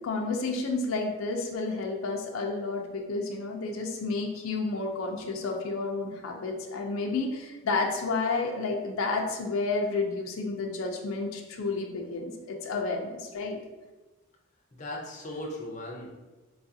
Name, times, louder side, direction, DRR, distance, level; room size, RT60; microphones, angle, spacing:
voice 1, 0.0-13.6, left 3 dB, 85° left, 1 dB, 0.5 m, -31 dB
voice 2, 14.7-16.2, left 1 dB, 35° left, -1 dB, 0.5 m, -38 dB
4.5 x 2.4 x 2.6 m, 1.2 s
head